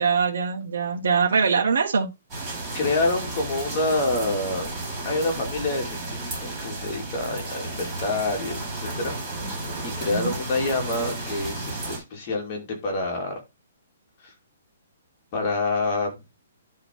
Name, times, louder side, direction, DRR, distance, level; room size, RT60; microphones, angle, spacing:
voice 1, 0.0-2.1 10.1-10.3, right 5 dB, 70° right, 1.7 m, -22 dB
sound 1, 2.3-12.0, right 2 dB, 10° right, 3.8 m, -33 dB
voice 2, 2.7-4.7 5.0-9.2 9.5-13.4 14.2-14.3 15.3-16.2, left 2 dB, 25° left, 2.6 m, -27 dB
10.5 x 3.7 x 4.6 m
hypercardioid pair, 175°, 0 cm